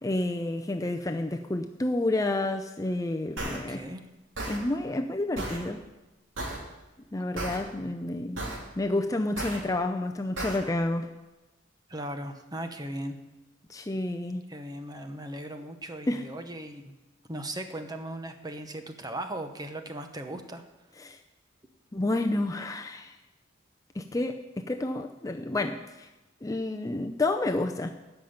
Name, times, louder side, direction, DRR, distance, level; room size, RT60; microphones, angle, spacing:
voice 1, 0.0-3.8 4.5-5.8 7.1-8.4 8.8-11.1 13.7-14.4 16.1-16.2 21.0-21.2 21.9-23.2 23.9-26.1 26.4-28.0, left 2 dB, 20° left, 5 dB, 0.5 m, -30 dB
voice 2, 3.4-4.0 11.9-13.2 14.5-16.9 17.3-20.6, right 1 dB, 20° right, 7 dB, 1.0 m, -38 dB
sound 1, 3.4-3.6 4.4-4.6 5.4-5.6 6.4-6.6 7.4-7.6 8.4-8.6 9.4-9.6 10.4-10.6, right 2 dB, 85° right, 3.0 m, -33 dB
13.0 x 5.8 x 8.7 m, 1.1 s
head